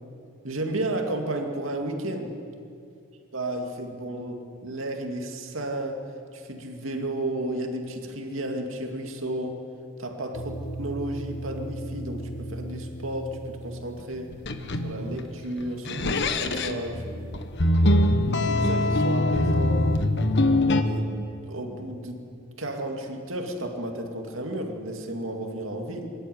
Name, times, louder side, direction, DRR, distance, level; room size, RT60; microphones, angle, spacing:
voice 1, 0.4-2.4 3.3-9.6 10.0-14.3 14.8-17.4 18.3-19.9 20.7-22.3 22.6-26.1, right 1 dB, 80° right, 3 dB, 2.4 m, -33 dB
sound 1, 10.3-14.0 14.3-15.2 15.8-20.8, left 1 dB, 60° left, 1.2 m, -25 dB
24.5 x 13.0 x 9.5 m, 2.5 s
head